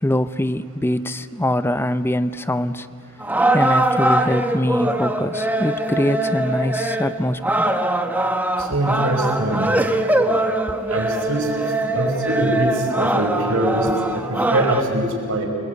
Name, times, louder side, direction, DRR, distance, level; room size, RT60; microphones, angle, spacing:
voice 1, 0.0-2.9 3.5-7.7, left 1 dB, 10° left, 12 dB, 0.6 m, -23 dB
sound 1, 3.2-14.8, right 1 dB, 10° right, 1.1 m, -22 dB
voice 2, 8.6-9.7 10.9-11.5 11.9-15.4, right 1 dB, 70° right, 2 dB, 5.5 m, -23 dB
29.5 x 21.5 x 8.2 m, 2.5 s
head